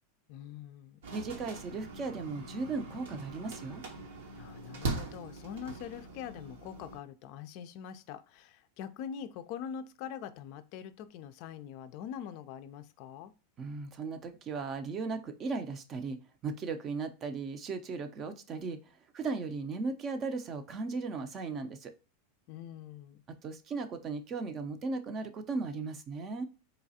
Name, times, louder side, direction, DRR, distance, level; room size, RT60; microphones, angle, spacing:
voice 1, 0.3-1.0 4.4-13.3 22.5-23.2, left 8 dB, 55° left, 0.3 m, -43 dB
sound 1, 1.0-7.0, right 3 dB, 75° right, 0.8 m, -41 dB
voice 2, 1.1-3.8 13.6-18.8 19.1-21.9 23.4-26.5, right 4 dB, 35° right, 0.5 m, -37 dB
3.9 x 2.3 x 2.7 m
hypercardioid pair, 115°, 0 cm